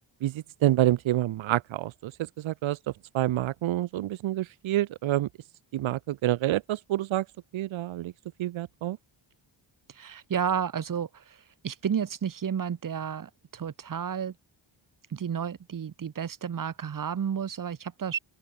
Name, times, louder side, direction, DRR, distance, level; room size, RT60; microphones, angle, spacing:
voice 1, 0.2-2.1 2.4-2.8 3.1-5.3 5.7-7.3 7.5-8.1 8.4-9.0, right 14 dB, 75° right, 0.7 m, -27 dB
voice 2, 9.9-14.3 15.1-18.2, right 8 dB, 45° right, 1.7 m, -32 dB
open air
wide cardioid pair, 180°, 47 cm